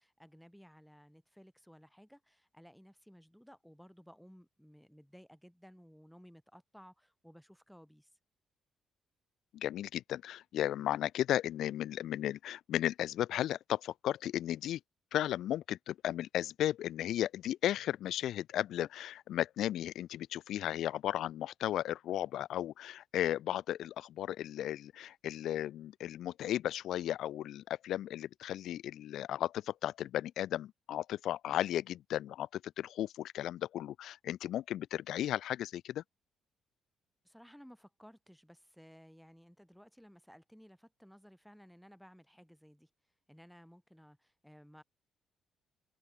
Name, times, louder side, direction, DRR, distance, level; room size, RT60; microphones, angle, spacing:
voice 1, 0.0-8.1 37.2-42.9 43.3-44.8, equal, ahead, 6.5 m, -58 dB
voice 2, 9.5-14.8 15.1-36.0, left 12 dB, 80° left, 0.5 m, -35 dB
cardioid pair, 90°, 0 cm